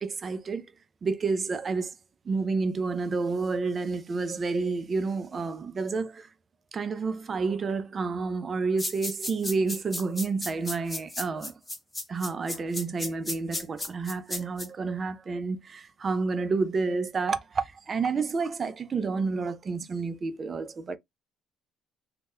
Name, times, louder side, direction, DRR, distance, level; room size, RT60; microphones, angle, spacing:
voice 1, 0.0-0.6 1.0-1.9 2.3-6.3 6.7-11.5 12.1-21.0, right 4 dB, 30° right, 0.4 m, -29 dB
sound 1, 8.8-14.7, left 1 dB, 10° left, 0.8 m, -34 dB
2.7 x 2.1 x 3.5 m
cardioid pair, 135°, 0 cm